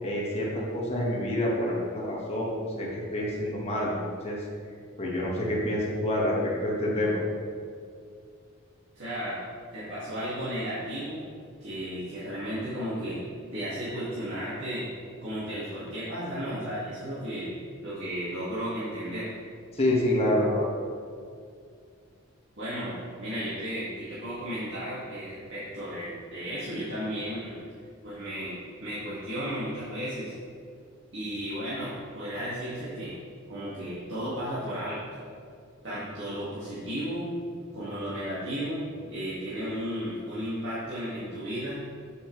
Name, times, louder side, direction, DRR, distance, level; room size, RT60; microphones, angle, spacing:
voice 1, 0.0-4.0 4.2-4.4 5.0-7.2 19.7-20.7, left 1 dB, 30° left, -4 dB, 1.8 m, -27 dB
voice 2, 8.9-9.4 9.7-11.2 11.6-13.2 13.5-14.8 15.2-17.5 17.8-19.3 22.6-27.6 28.0-30.3 31.1-33.1 33.5-35.3 35.8-37.2 37.7-41.8, equal, 65° right, -11 dB, 2.2 m, -34 dB
8.3 x 8.2 x 3.3 m, 2.2 s
head